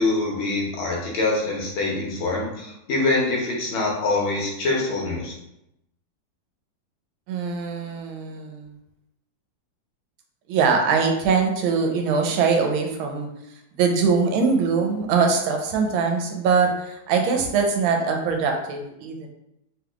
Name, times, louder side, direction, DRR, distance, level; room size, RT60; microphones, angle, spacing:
voice 1, 0.0-5.3, left 2 dB, 75° left, -2 dB, 1.7 m, -24 dB
voice 2, 7.3-8.7 10.5-13.3 13.8-19.3, right 5 dB, 80° right, 3 dB, 1.4 m, -22 dB
3.6 x 3.4 x 2.3 m, 0.83 s
omnidirectional pair, 2.3 m